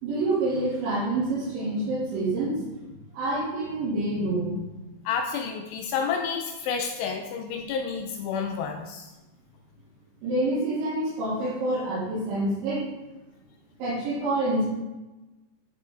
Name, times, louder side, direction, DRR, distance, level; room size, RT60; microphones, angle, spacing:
voice 1, 0.0-2.8 3.1-4.6 10.2-12.9 13.8-14.7, right 2 dB, 80° right, -12 dB, 5.0 m, -27 dB
voice 2, 5.1-9.1, left 6 dB, 85° left, 4 dB, 2.4 m, -30 dB
10.0 x 5.3 x 3.8 m, 1.1 s
omnidirectional pair, 5.4 m